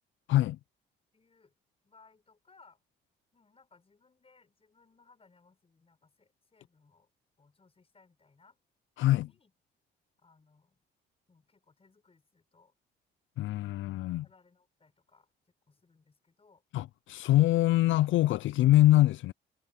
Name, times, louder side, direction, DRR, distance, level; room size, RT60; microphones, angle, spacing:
voice 1, 0.3-0.6 9.0-9.3 13.4-14.3 16.7-19.3, left 15 dB, 75° left, 0.4 m, -24 dB
voice 2, 1.1-1.5 1.8-2.8 3.3-7.1 7.4-8.6 9.0-9.5 10.2-10.8 11.3-12.7 14.2-15.3 15.7-16.6, left 4 dB, 30° left, 6.9 m, -64 dB
cardioid pair, 90°, 20 cm